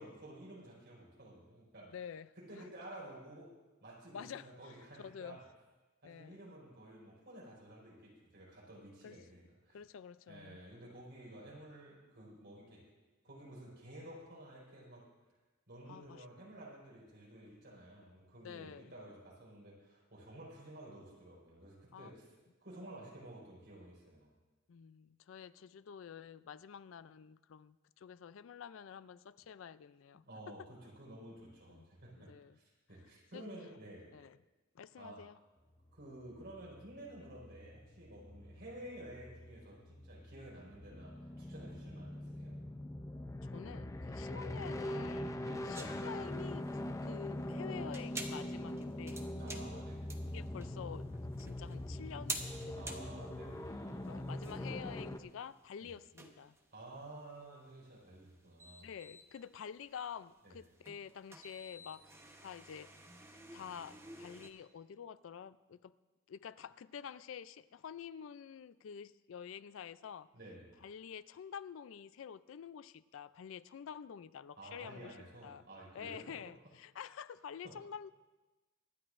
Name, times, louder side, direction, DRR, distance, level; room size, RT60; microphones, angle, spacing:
voice 1, 0.0-1.9 2.4-3.5 3.8-5.4 6.0-9.8 10.3-12.8 13.2-15.0 15.7-22.3 22.6-24.3 30.1-32.3 32.5-34.1 35.0-35.2 35.9-42.6 45.4-45.6 49.4-50.1 52.7-54.7 55.8-55.9 56.7-58.9 60.4-60.6 70.3-70.7 74.6-76.2 77.6-77.8, right 1 dB, 60° right, -5 dB, 4.7 m, -52 dB
voice 2, 1.9-2.7 4.1-5.4 6.0-6.4 9.0-9.2 9.7-10.6 15.9-16.3 18.4-18.9 21.9-22.1 24.7-30.5 31.7-31.9 32.2-32.6 33.3-33.4 34.1-34.4 34.7-35.4 43.4-49.3 50.3-51.1 51.4-53.0 54.1-56.6 58.8-62.9 63.5-65.9 66.3-70.3 70.8-75.2 75.4-75.6 75.9-78.1, left 7 dB, 70° left, 16 dB, 0.4 m, -49 dB
sound 1, 36.1-55.2, left 1 dB, 15° left, 0.5 m, -43 dB
sound 2, 45.7-64.5, right 2 dB, 15° right, 1.0 m, -50 dB
24.5 x 10.5 x 2.5 m, 1.2 s
head